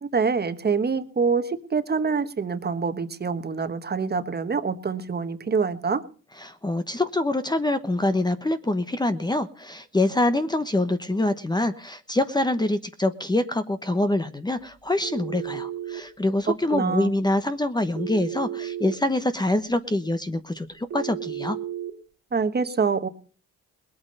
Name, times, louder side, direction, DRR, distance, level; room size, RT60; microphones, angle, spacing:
voice 1, 0.0-6.0 16.7-17.1 22.3-23.1, right 5 dB, 35° right, 10 dB, 1.4 m, -25 dB
voice 2, 6.4-21.6, left 2 dB, 15° left, 10 dB, 1.0 m, -25 dB
Telephone, 15.0-16.0 18.0-19.0 20.9-21.9, right 10 dB, 70° right, 2.3 m, -33 dB
20.0 x 8.7 x 5.4 m, 0.41 s
cardioid pair, 90°, 30 cm